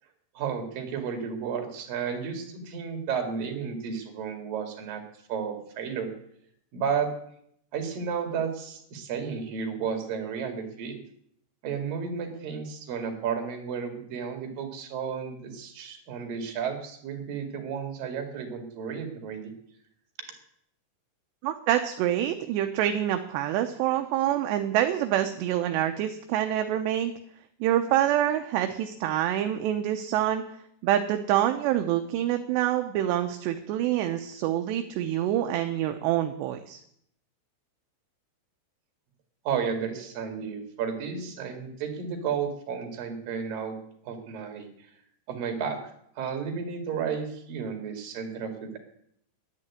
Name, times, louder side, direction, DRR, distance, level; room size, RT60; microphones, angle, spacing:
voice 1, 0.4-5.0 5.3-6.1 6.7-7.1 7.7-11.0 11.6-19.5 39.5-43.7 44.0-44.9 45.3-45.8 46.2-48.8, right 6 dB, 55° right, 4 dB, 3.6 m, -32 dB
voice 2, 21.4-27.1 27.6-30.4 30.8-36.8, right 12 dB, 80° right, 7 dB, 2.7 m, -26 dB
10.5 x 9.6 x 9.8 m, 0.71 s
omnidirectional pair, 5.3 m